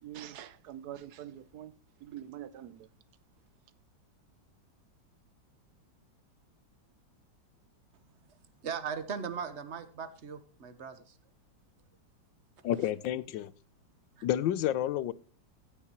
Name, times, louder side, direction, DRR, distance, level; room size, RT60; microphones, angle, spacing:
voice 1, 0.0-2.9, right 11 dB, 70° right, 1.0 m, -45 dB
voice 2, 8.6-11.2 14.2-14.3, right 6 dB, 40° right, 1.3 m, -38 dB
voice 3, 12.6-13.5 14.2-15.1, left 12 dB, 85° left, 1.4 m, -30 dB
15.5 x 8.4 x 3.0 m
omnidirectional pair, 2.0 m